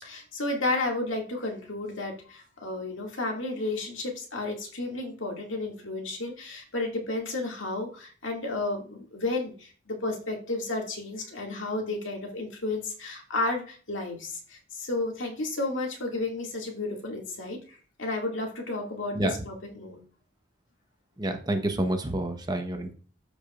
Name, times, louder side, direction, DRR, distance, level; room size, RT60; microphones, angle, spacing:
voice 1, 0.0-19.2 19.5-20.0, left 2 dB, 75° left, 1 dB, 2.2 m, -32 dB
voice 2, 21.2-22.9, right 1 dB, 20° right, 5 dB, 1.0 m, -28 dB
13.5 x 4.9 x 2.5 m, 0.39 s
head